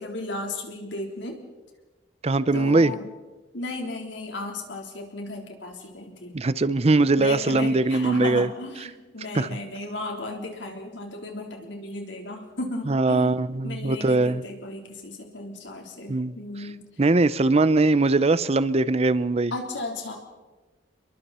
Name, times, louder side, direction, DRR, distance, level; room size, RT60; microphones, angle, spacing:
voice 1, 0.0-1.4 2.5-3.1 3.5-6.4 7.2-16.8 19.5-20.2, left 2 dB, 85° left, 2 dB, 3.8 m, -35 dB
voice 2, 2.2-2.9 6.3-8.5 9.3-9.5 12.9-14.4 16.1-16.3 17.0-19.5, right 3 dB, 35° right, 16 dB, 0.6 m, -21 dB
29.0 x 22.5 x 4.3 m, 1.2 s
head